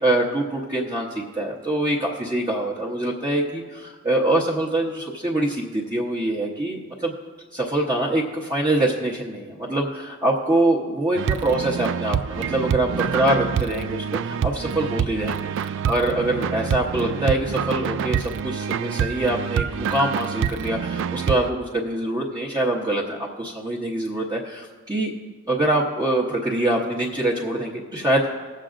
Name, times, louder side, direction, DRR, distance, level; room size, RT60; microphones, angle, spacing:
voice 1, 0.0-7.1 7.5-25.1 25.5-28.3, right 1 dB, 20° right, -6 dB, 1.0 m, -24 dB
sound 1, 11.2-21.5, right 7 dB, 60° right, 0.3 m, -26 dB
20.5 x 7.5 x 2.5 m, 1.5 s
head